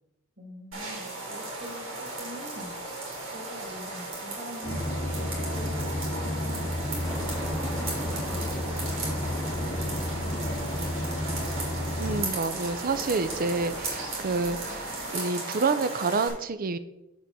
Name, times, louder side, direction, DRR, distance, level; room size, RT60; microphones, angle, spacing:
voice 1, 0.4-2.7 3.3-11.2, right 1 dB, 60° right, -4 dB, 2.5 m, -44 dB
sound 1, 0.7-16.3, right 2 dB, 75° right, 3.1 m, -36 dB
sound 2, 4.6-12.3, left 1 dB, 40° left, 0.8 m, -32 dB
sound 3, 7.0-15.1, equal, ahead, 0.6 m, -42 dB
voice 2, 12.0-16.8, right 4 dB, 45° right, 12 dB, 0.5 m, -28 dB
7.5 x 6.8 x 4.1 m, 0.92 s
head